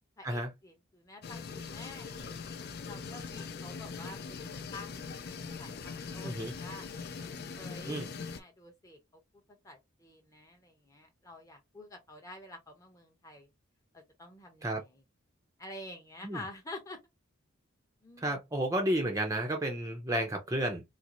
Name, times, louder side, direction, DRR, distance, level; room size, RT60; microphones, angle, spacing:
voice 1, 0.2-6.9 7.6-9.0 9.6-13.5 13.9-15.0 15.6-17.0 18.0-18.4, left 2 dB, 15° left, 0.8 m, -49 dB
sound 1, 1.2-8.4, left 5 dB, 50° left, 0.4 m, -41 dB
voice 2, 6.2-6.5 7.9-8.1 14.6-14.8 16.2-16.4 18.2-20.8, right 1 dB, 15° right, 0.6 m, -32 dB
4.3 x 2.0 x 2.5 m
head